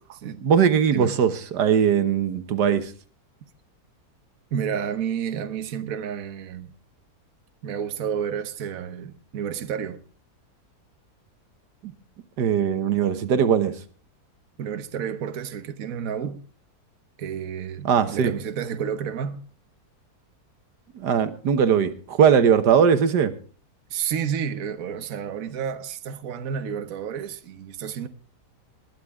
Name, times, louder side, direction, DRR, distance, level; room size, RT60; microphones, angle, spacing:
voice 1, 0.4-2.9 12.4-13.8 17.8-18.3 20.9-23.3, right 7 dB, 90° right, 1.7 m, -20 dB
voice 2, 4.5-6.7 7.6-10.0 14.6-16.4 17.2-19.4 23.9-28.1, right 8 dB, 60° right, 1.4 m, -30 dB
21.0 x 10.5 x 3.6 m
omnidirectional pair, 1.7 m